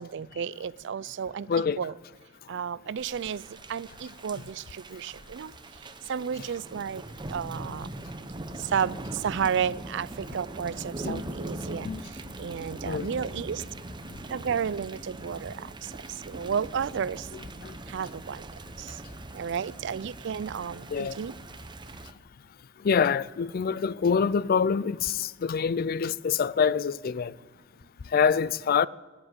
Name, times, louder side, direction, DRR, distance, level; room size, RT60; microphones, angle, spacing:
voice 1, 0.0-1.5 1.8-1.9 2.5-3.4 3.7-5.5 6.1-7.0 7.3-7.9 8.7-11.9 12.4-13.6 14.3-15.7 16.3-17.3 17.9-18.4 18.8-18.9 19.3-21.3, right 7 dB, 60° right, 0.4 m, -32 dB
voice 2, 1.5-1.8 11.0-11.2 11.8-12.0 12.8-13.1 17.6-17.7 20.9-21.2 22.8-27.3 28.1-28.9, left 6 dB, 50° left, 0.4 m, -25 dB
Thunder / Rain, 3.0-22.1, right 1 dB, 25° right, 0.9 m, -41 dB
17.0 x 10.0 x 8.0 m
head